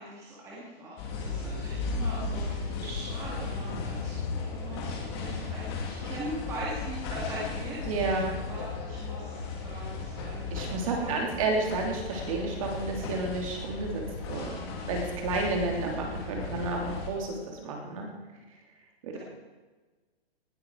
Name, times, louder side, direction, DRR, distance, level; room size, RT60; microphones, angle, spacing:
voice 1, 0.0-11.4, equal, 10° right, -6 dB, 2.1 m, -41 dB
sound 1, 1.0-17.1, left 4 dB, 25° left, 2.2 m, -35 dB
voice 2, 7.9-8.3 10.5-18.1 19.0-19.2, right 3 dB, 35° right, 1 dB, 3.0 m, -31 dB
19.0 x 12.5 x 4.7 m, 1.3 s
hypercardioid pair, 175°, 32 cm